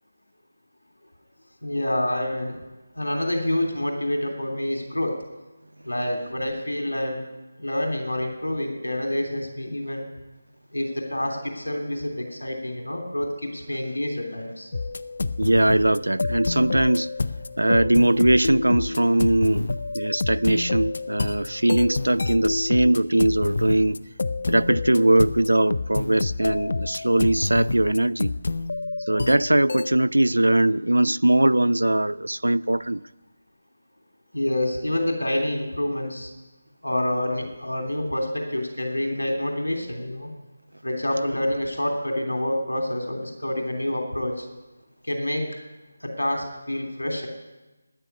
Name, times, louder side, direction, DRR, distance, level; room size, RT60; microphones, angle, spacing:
voice 1, 1.6-2.6 2.9-5.2 5.8-7.2 7.6-10.1 10.7-14.7 34.3-36.3 36.8-40.3 40.8-44.5 45.0-45.6 46.0-47.3, left 1 dB, 80° left, 3.0 m, -27 dB
sound 1, 14.7-30.0, left 3 dB, 55° left, 0.6 m, -28 dB
voice 2, 15.4-17.1 17.6-24.0 24.5-28.3 29.1-33.0, right 1 dB, 80° right, 0.5 m, -21 dB
13.5 x 10.0 x 9.6 m
figure-of-eight pair, 160°, 0 cm